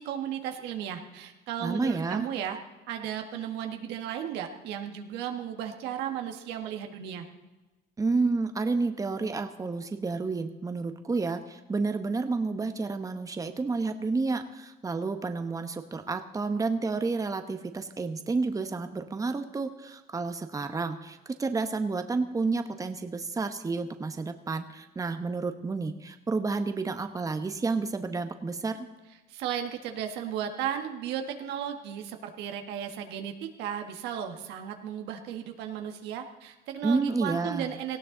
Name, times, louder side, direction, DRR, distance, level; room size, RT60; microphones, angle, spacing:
voice 1, 0.0-2.6 2.9-7.3 29.3-38.0, right 9 dB, 90° right, 5 dB, 1.7 m, -35 dB
voice 2, 1.6-2.3 8.0-28.9 36.8-37.7, right 3 dB, 20° right, 8 dB, 1.1 m, -30 dB
18.0 x 16.0 x 3.9 m, 1.1 s
cardioid pair, 110°, 17 cm